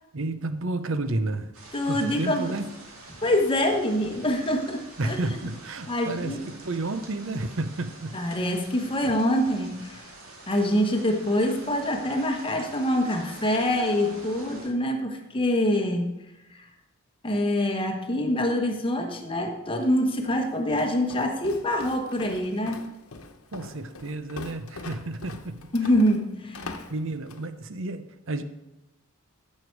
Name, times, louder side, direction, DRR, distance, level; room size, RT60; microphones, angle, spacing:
voice 1, 0.1-1.5 1.9-2.7 5.0-8.2 23.5-25.9 26.9-28.4, right 2 dB, 65° right, 11 dB, 0.8 m, -31 dB
sound 1, 1.5-14.7, right 2 dB, 85° right, 2.2 m, -46 dB
voice 2, 1.7-2.5 3.2-5.3 5.9-6.4 8.1-10.1 10.5-16.1 17.2-22.8 25.7-26.8, left 1 dB, 25° left, 3 dB, 1.3 m, -25 dB
Walk footsteps, 19.8-27.5, left 3 dB, 90° left, 1.0 m, -43 dB
14.5 x 6.8 x 4.7 m, 1.0 s
head